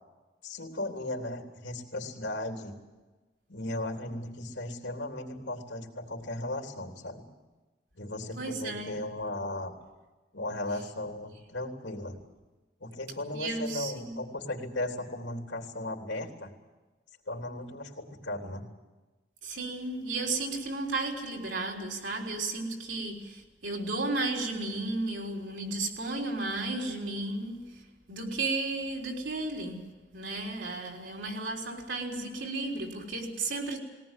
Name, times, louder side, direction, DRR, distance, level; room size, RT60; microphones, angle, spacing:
voice 1, 0.4-2.8 3.5-7.3 7.9-9.7 10.3-12.2 12.8-16.5 17.3-18.7, left 1 dB, 85° left, 3.2 m, -36 dB
voice 2, 8.4-9.0 13.3-14.1 19.4-27.8 28.1-29.9 30.1-33.8, right 2 dB, 80° right, 3.9 m, -33 dB
21.0 x 18.0 x 9.2 m
head